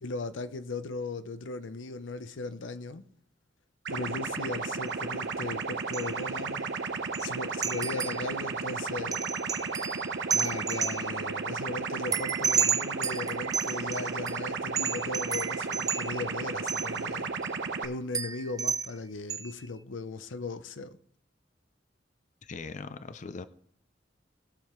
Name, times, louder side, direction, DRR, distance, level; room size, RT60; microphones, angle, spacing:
voice 1, 0.0-3.0 3.9-6.7 7.2-9.2 10.3-17.3 17.8-21.0, left 3 dB, 90° left, 0.7 m, -37 dB
sound 1, 3.8-17.8, right 4 dB, 75° right, 0.9 m, -34 dB
sound 2, 4.9-5.0 5.9-6.3 6.6-6.7 7.1-7.3 7.6-8.4 9.1-11.3 12.1-14.4 14.8-16.3 16.7-17.0 17.4-17.5 18.1-18.9 19.3-19.6, right 6 dB, 20° right, 0.5 m, -32 dB
voice 2, 22.4-23.5, left 4 dB, 40° left, 0.5 m, -40 dB
19.0 x 6.6 x 3.1 m
head